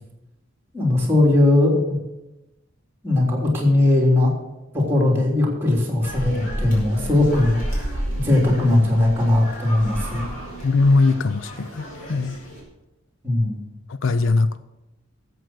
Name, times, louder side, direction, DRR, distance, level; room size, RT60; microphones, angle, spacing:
voice 1, 0.7-2.0 3.0-4.3 4.7-10.3 13.2-13.6, left 2 dB, 10° right, 3.3 m, -19 dB
sound 1, 6.0-12.6, equal, 40° left, 5.0 m, -32 dB
voice 2, 10.6-12.4 13.9-14.7, left 3 dB, 65° left, 0.5 m, -20 dB
14.0 x 7.9 x 6.2 m
head